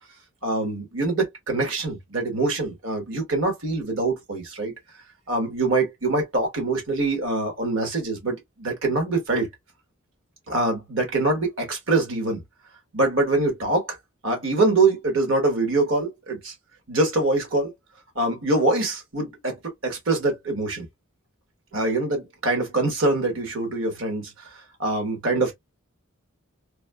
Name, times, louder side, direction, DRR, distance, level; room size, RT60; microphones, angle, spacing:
voice 1, 0.4-4.7 5.3-9.5 10.5-12.4 12.9-14.0 14.2-16.5 16.9-17.7 18.1-19.6 19.8-20.9 21.7-24.5 24.8-25.5, right 2 dB, 65° right, 1.4 m, -24 dB
3.1 x 2.7 x 2.2 m
head